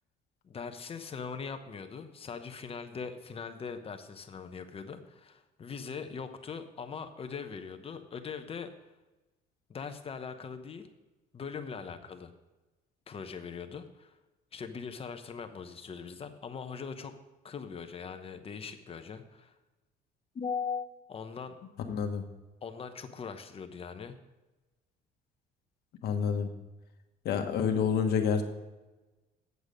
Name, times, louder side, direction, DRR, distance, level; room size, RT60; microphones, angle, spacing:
voice 1, 0.4-8.7 9.7-10.9 11.3-12.3 13.1-14.2 14.5-17.1 17.4-19.5 20.3-21.6 22.6-24.2, left 5 dB, 35° left, 8 dB, 0.9 m, -41 dB
voice 2, 21.9-22.2 26.0-26.5 27.2-28.4, left 7 dB, 70° left, 5 dB, 1.3 m, -28 dB
8.2 x 8.1 x 5.2 m, 1.1 s
cardioid pair, 110°, 17 cm